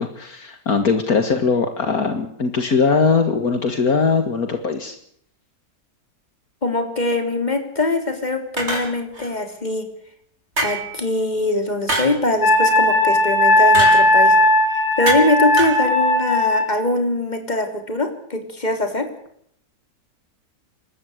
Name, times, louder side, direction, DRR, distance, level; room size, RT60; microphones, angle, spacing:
voice 1, 0.0-5.0, left 5 dB, 65° left, 7 dB, 2.3 m, -20 dB
voice 2, 6.6-9.9 10.6-14.3 15.0-19.1, left 2 dB, 25° left, 6 dB, 3.8 m, -22 dB
sound 1, 8.6-9.3 10.6-11.0 11.9-12.2 13.7-14.1 15.1-15.3 15.6-15.8, right 1 dB, 40° right, 5.3 m, -24 dB
Wind instrument woodwind instrument, 12.4-16.7, left 1 dB, 45° left, 7.2 m, -16 dB
27.5 x 14.0 x 8.1 m, 0.68 s
omnidirectional pair, 1.7 m